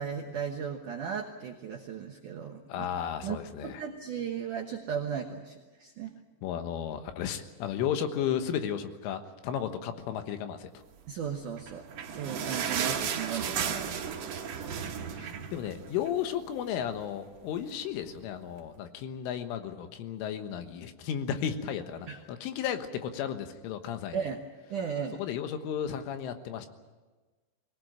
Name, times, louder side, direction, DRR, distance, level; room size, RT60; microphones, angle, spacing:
voice 1, 0.0-2.9 3.2-3.4 3.6-6.1 11.1-11.8 12.1-14.1 22.1-22.2 24.1-24.4 24.7-25.2, right 7 dB, 75° right, 2 dB, 1.8 m, -36 dB
voice 2, 2.7-3.8 6.4-10.7 15.1-24.3 25.2-26.7, left 9 dB, 85° left, 8 dB, 3.8 m, -34 dB
sound 1, 11.5-16.3 16.6-16.7 17.0-17.2 17.9-18.0, right 7 dB, 60° right, 2.3 m, -34 dB
22.0 x 19.0 x 8.9 m, 1.3 s
omnidirectional pair, 5.5 m